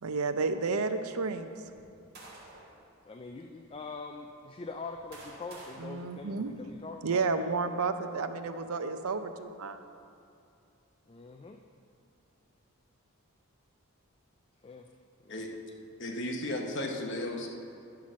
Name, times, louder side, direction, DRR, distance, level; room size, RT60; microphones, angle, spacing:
voice 1, 0.0-1.5 5.8-6.5 7.0-9.8, right 4 dB, 85° right, 9 dB, 0.6 m, -31 dB
sound 1, 1.6-2.8 3.6-3.7 4.6-6.9, right 2 dB, 45° right, 1.9 m, -51 dB
voice 2, 3.0-7.5 11.1-11.6 14.6-14.9 15.2-15.6, left 3 dB, 25° left, 4 dB, 0.3 m, -43 dB
voice 3, 16.0-17.5, left 1 dB, 55° left, 1 dB, 1.0 m, -34 dB
10.5 x 5.7 x 6.2 m, 2.6 s
head